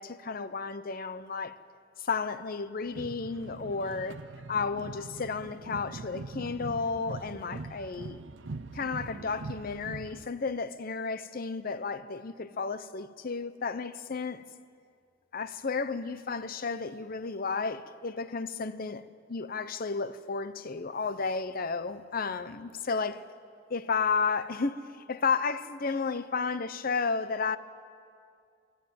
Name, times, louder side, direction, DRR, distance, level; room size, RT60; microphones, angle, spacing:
voice 1, 0.0-1.6 2.0-4.2 4.5-8.2 8.7-14.4 15.3-19.0 19.3-23.2 23.7-27.6, left 4 dB, 50° left, 0.7 m, -32 dB
sound 1, 2.8-10.3, right 3 dB, 85° right, 0.6 m, -42 dB
23.5 x 12.0 x 9.4 m
head